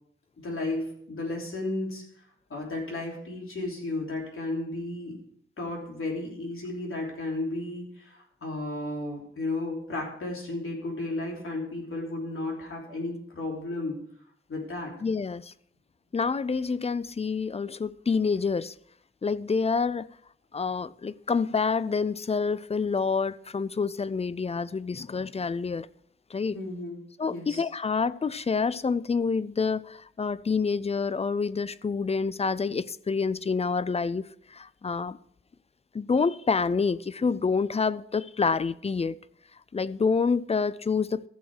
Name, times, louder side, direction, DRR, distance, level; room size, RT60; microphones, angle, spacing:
voice 1, 0.4-2.0 2.5-5.2 5.6-14.0 14.5-14.9 26.5-27.0 27.3-27.6, left 2 dB, 80° left, 3.2 m, -33 dB
voice 2, 15.0-15.5 16.1-18.7 19.2-20.1 20.5-25.9 26.3-26.6 27.2-35.2 35.9-39.2 39.7-41.3, left 5 dB, 30° left, 0.4 m, -27 dB
14.5 x 6.5 x 4.8 m
wide cardioid pair, 115°, 21 cm